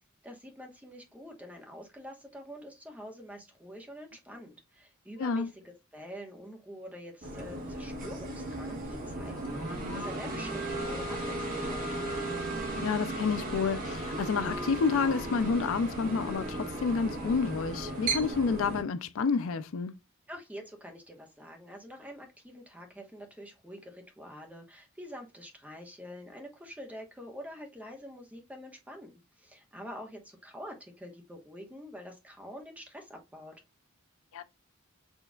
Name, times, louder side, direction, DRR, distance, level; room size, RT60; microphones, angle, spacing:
voice 1, 0.2-11.9 20.3-33.5, equal, 5° right, 1.1 m, -46 dB
sound 1, 7.2-18.8, right 2 dB, 40° right, 1.9 m, -35 dB
voice 2, 12.7-19.9 34.3-34.4, left 5 dB, 65° left, 0.4 m, -29 dB
6.2 x 3.3 x 2.3 m
head